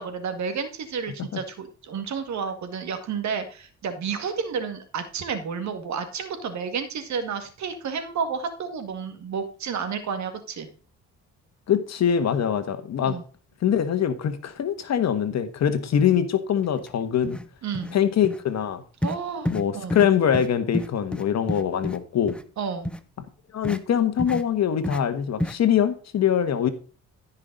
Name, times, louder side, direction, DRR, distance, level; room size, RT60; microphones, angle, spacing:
voice 1, 0.0-10.7 13.0-13.2 17.6-18.0 19.0-20.0 22.6-22.9, right 6 dB, 65° right, 8 dB, 2.0 m, -31 dB
voice 2, 11.7-13.1 13.6-17.4 17.9-18.8 19.5-22.3 23.5-26.7, left 8 dB, 60° left, 10 dB, 1.4 m, -23 dB
sound 1, 16.8-16.9 17.2-17.5 17.7-18.0 18.2-18.4 19.0-19.2 19.5-19.6 19.9-20.1 20.3-20.5 20.7-22.0 22.3-22.4 22.8-23.0 23.6-23.8 24.2-24.4 24.8-25.0 25.4-25.6, equal, 5° left, 0.8 m, -29 dB
14.0 x 5.7 x 4.0 m, 0.40 s
cardioid pair, 90°, 30 cm